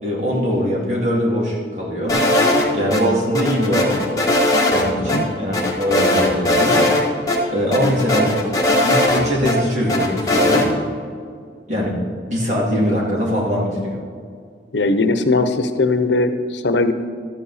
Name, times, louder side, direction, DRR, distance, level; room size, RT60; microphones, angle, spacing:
voice 1, 0.0-2.2 2.7-4.0 4.7-6.8 7.5-8.3 8.8-10.7 11.7-12.0 12.3-14.0, equal, 40° right, -3 dB, 2.5 m, -21 dB
sound 1, 2.1-3.0 3.3-4.8 5.1-5.2 5.5-7.0 7.3-7.4 7.7-9.5 9.9-10.7, left 1 dB, 20° left, 1.4 m, -18 dB
voice 2, 14.7-16.9, left 3 dB, 90° left, 9 dB, 0.8 m, -19 dB
13.0 x 8.6 x 4.2 m, 2.1 s
head